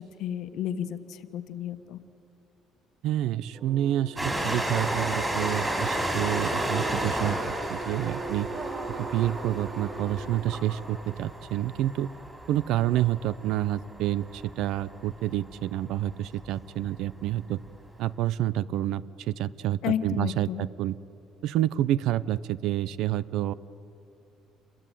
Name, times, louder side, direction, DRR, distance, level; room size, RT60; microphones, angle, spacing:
voice 1, 0.0-2.0 19.8-20.7, left 10 dB, 55° left, 10 dB, 1.3 m, -32 dB
voice 2, 3.0-7.4 7.7-8.5 9.0-12.1 12.5-17.6 18.0-20.9 21.4-23.5, right 13 dB, 60° right, 18 dB, 0.6 m, -28 dB
sound 1, 3.5-10.6, right 3 dB, 30° right, 4.3 m, -40 dB
Train, 4.2-15.3 16.1-16.2 16.4-16.5, right 1 dB, 10° right, 4.1 m, -32 dB
28.5 x 22.5 x 9.2 m, 2.8 s
cardioid pair, 180°, 0 cm